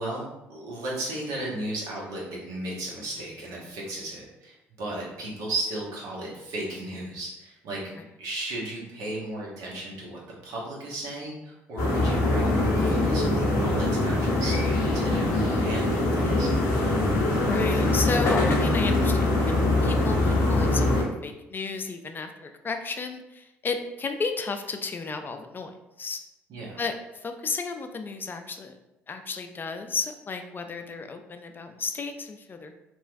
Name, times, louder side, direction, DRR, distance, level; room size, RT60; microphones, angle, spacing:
voice 1, 0.0-7.8 8.2-16.5 26.5-26.8, right 1 dB, 65° right, -4 dB, 1.0 m, -35 dB
sound 1, 11.8-21.0, left 2 dB, 65° left, 0.7 m, -23 dB
voice 2, 17.4-26.2 26.8-28.8 29.1-32.7, left 4 dB, 30° left, 6 dB, 0.3 m, -33 dB
2.9 x 2.3 x 2.5 m, 0.92 s
hypercardioid pair, 60°, 6 cm